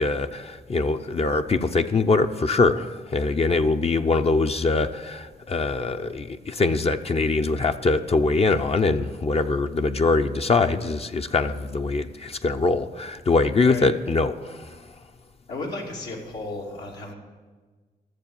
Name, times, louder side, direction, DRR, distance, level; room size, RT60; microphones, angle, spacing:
voice 1, 0.0-14.6, left 3 dB, 40° left, 7 dB, 0.6 m, -23 dB
voice 2, 15.5-17.1, left 2 dB, 85° left, -3 dB, 2.8 m, -33 dB
13.5 x 7.1 x 7.0 m, 1.4 s
cardioid pair, 70°, 17 cm